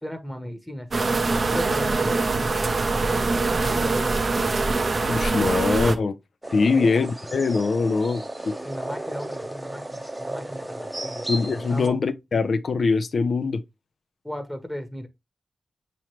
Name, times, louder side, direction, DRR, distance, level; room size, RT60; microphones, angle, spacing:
voice 1, 0.0-1.2 1.5-2.5 3.6-4.2 6.7-6.9 8.6-11.3 11.7-12.0 14.2-15.1, equal, 10° left, 1.0 m, -35 dB
sound 1, 0.9-6.0, right 3 dB, 55° right, 0.6 m, -23 dB
voice 2, 5.1-6.2 6.5-8.6 11.3-13.6, left 4 dB, 65° left, 0.4 m, -23 dB
sound 2, 6.4-11.9, right 1 dB, 20° right, 0.8 m, -34 dB
5.8 x 3.0 x 2.9 m
cardioid pair, 50°, 0 cm